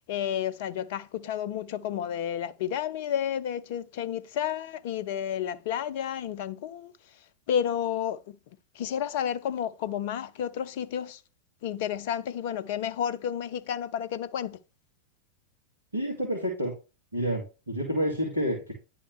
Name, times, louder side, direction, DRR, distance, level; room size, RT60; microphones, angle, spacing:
voice 1, 0.1-6.9 7.5-8.4 8.8-11.2 11.6-14.6, left 9 dB, 50° left, 0.5 m, -31 dB
voice 2, 15.9-16.7 17.1-18.7, equal, 80° right, 2.1 m, -29 dB
10.5 x 3.6 x 3.2 m
figure-of-eight pair, 90°, 0 cm